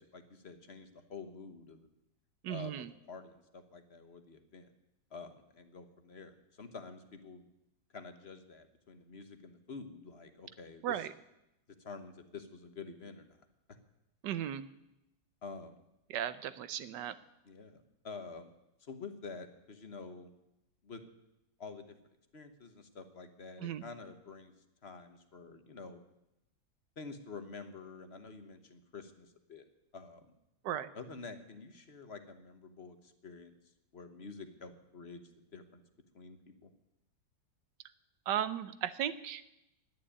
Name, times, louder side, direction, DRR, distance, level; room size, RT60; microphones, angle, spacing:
voice 1, 0.0-1.9 2.5-4.7 5.1-7.5 7.9-11.1 11.8-13.4 15.4-15.8 17.4-18.5 18.8-20.3 20.8-21.0 21.6-22.0 22.3-24.5 24.8-26.0 27.0-29.7 29.9-30.3 30.9-33.5 33.9-35.8 36.1-36.7, left 4 dB, 40° left, 8 dB, 1.2 m, -48 dB
voice 2, 2.4-2.9 10.8-11.1 14.2-14.6 16.1-17.2 23.6-23.8 30.6-30.9 38.3-39.4, right 10 dB, 75° right, 14 dB, 1.4 m, -36 dB
11.0 x 10.0 x 9.9 m, 0.88 s
omnidirectional pair, 1.9 m